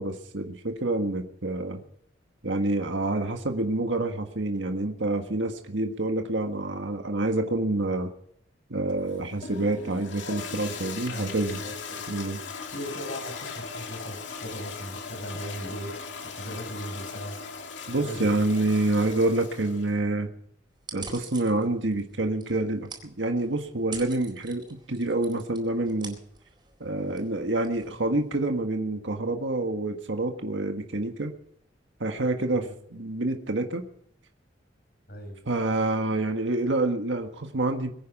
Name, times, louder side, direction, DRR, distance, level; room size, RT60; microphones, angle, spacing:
voice 1, 0.0-1.8 2.4-8.1 8.7-11.6 12.1-12.4 17.9-20.3 20.9-22.9 23.2-26.2 26.8-31.3 32.0-33.8 35.4-37.9, right 2 dB, 80° right, 4 dB, 1.6 m, -27 dB
Toilet flush, 8.9-19.9, left 5 dB, 80° left, 2.3 m, -39 dB
voice 2, 11.1-12.1 12.7-15.9 16.3-17.4 18.0-18.4 32.5-32.7 35.1-35.4, equal, 55° left, 3 dB, 6.5 m, -38 dB
sound 1, 20.8-28.5, right 5 dB, 25° right, 4.1 m, -46 dB
23.0 x 9.5 x 6.0 m, 0.70 s
head